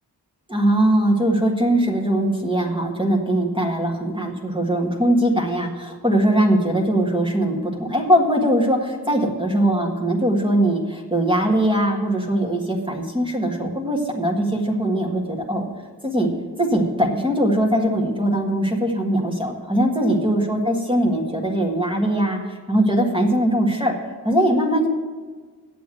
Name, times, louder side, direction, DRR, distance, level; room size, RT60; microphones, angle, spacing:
voice 1, 0.5-15.7 16.0-16.3 16.6-24.9, right 1 dB, 10° right, -1 dB, 1.6 m, -21 dB
8.5 x 7.6 x 7.6 m, 1.5 s
wide cardioid pair, 70°, 41 cm